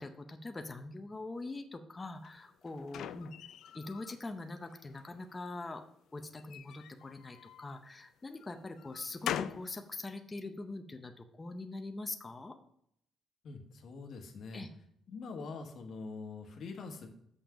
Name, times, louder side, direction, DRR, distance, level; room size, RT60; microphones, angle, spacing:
voice 1, 0.0-3.3 3.7-5.8 6.1-12.6 14.5-14.7, left 2 dB, 15° left, 6 dB, 0.6 m, -43 dB
sound 1, 2.2-4.2 4.6-5.4 6.4-7.8 8.4-9.7, left 10 dB, 80° left, 0.4 m, -42 dB
voice 2, 13.4-14.6 15.1-17.1, left 4 dB, 55° left, 3 dB, 1.2 m, -44 dB
7.0 x 5.8 x 5.0 m, 0.70 s
cardioid pair, 170°, 0 cm